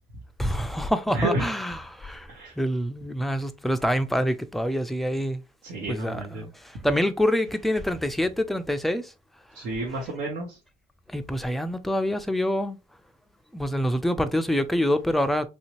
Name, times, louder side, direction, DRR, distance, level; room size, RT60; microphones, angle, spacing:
voice 1, 0.4-2.3 2.6-5.4 5.9-6.5 6.8-9.0 11.1-12.8 13.5-15.5, equal, ahead, 0.4 m, -26 dB
voice 2, 1.1-1.5 2.3-2.5 5.6-6.5 9.5-10.6, right 2 dB, 75° right, 1.1 m, -30 dB
3.2 x 2.7 x 3.0 m
cardioid pair, 110°, 17 cm